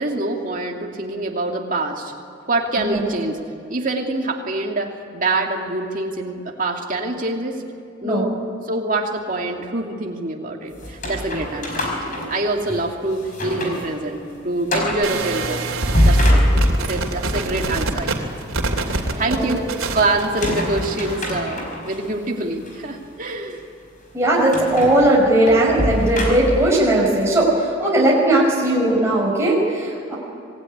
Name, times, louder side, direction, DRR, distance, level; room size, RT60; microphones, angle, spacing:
voice 1, 0.0-2.1 2.5-3.4 3.7-7.6 8.0-8.3 8.6-15.7 16.0-18.3 19.2-23.6, right 2 dB, 40° right, 1 dB, 2.6 m, -25 dB
sound 1, 10.8-12.9 13.3-13.9 14.2-14.3 14.7-15.1 15.7-17.0 20.2-22.0 22.6-22.8 24.5-26.8, equal, 40° left, 5.2 m, -22 dB
sound 2, 15.0-21.2, right 2 dB, 85° right, 2.9 m, -26 dB
voice 2, 19.1-19.6 24.1-30.2, right 1 dB, 15° right, -4 dB, 5.6 m, -18 dB
26.0 x 19.5 x 9.7 m, 2.5 s
head